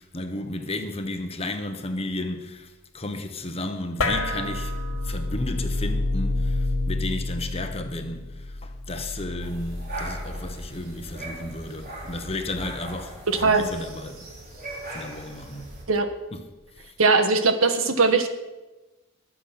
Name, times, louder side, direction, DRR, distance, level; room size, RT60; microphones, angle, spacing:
voice 1, 0.0-14.3 14.9-15.7 16.3-16.4 16.8-16.9, left 2 dB, 30° left, 1.2 m, -33 dB
sound 1, 4.0-10.7, left 2 dB, 85° left, 1.6 m, -29 dB
sound 2, 9.4-15.8, right 1 dB, 45° right, 4.9 m, -39 dB
voice 2, 13.3-13.7 15.9-16.1 17.0-18.3, right 4 dB, 80° right, 1.4 m, -20 dB
21.0 x 7.3 x 6.0 m
head